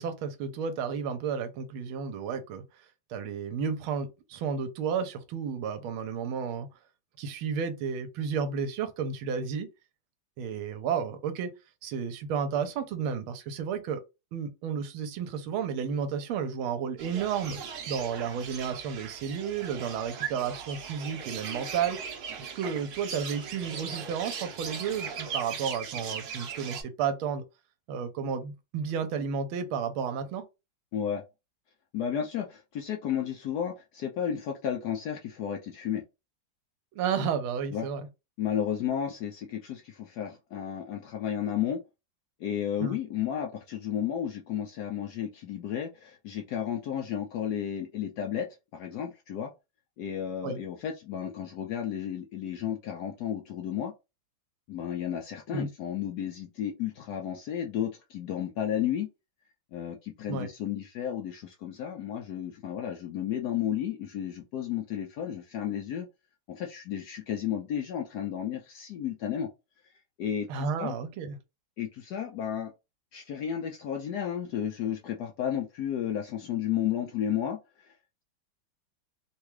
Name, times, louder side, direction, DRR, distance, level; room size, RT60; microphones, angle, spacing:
voice 1, 0.0-2.6 3.1-6.7 7.2-9.7 10.4-11.5 11.8-14.0 14.3-17.6 17.9-22.0 22.4-27.4 27.9-30.4 36.9-38.1 42.8-43.0 50.4-50.6 55.5-55.7 60.3-60.5 70.5-71.4, right 6 dB, 85° right, 1.5 m, -32 dB
sound 1, 17.0-26.8, right 6 dB, 60° right, 1.1 m, -39 dB
voice 2, 30.9-31.2 31.9-36.0 37.7-37.9 38.4-41.8 42.4-48.5 48.7-49.5 50.0-53.9 54.7-59.1 59.7-66.1 66.5-69.5 70.2-71.0 71.8-72.7 73.1-77.9, left 9 dB, 80° left, 0.9 m, -33 dB
3.6 x 2.3 x 3.1 m
omnidirectional pair, 2.3 m